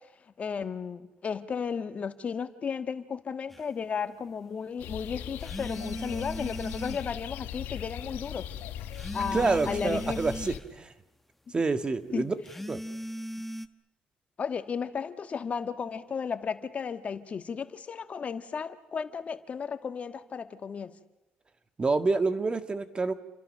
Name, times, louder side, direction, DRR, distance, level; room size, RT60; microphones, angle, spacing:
voice 1, 0.4-8.6 9.1-10.2 12.1-12.3 14.4-21.0, left 6 dB, 40° left, 9 dB, 1.6 m, -34 dB
sound 1, 3.5-3.6 5.4-7.2 8.9-10.7 12.4-13.7, equal, 5° left, 1.2 m, -38 dB
sound 2, 4.8-10.6, left 10 dB, 85° left, 1.6 m, -39 dB
voice 2, 9.3-10.9 11.5-12.3 12.7-12.8 21.8-23.1, right 3 dB, 25° right, 9 dB, 1.7 m, -27 dB
29.5 x 25.5 x 6.6 m, 1.0 s
cardioid pair, 100°, 3 cm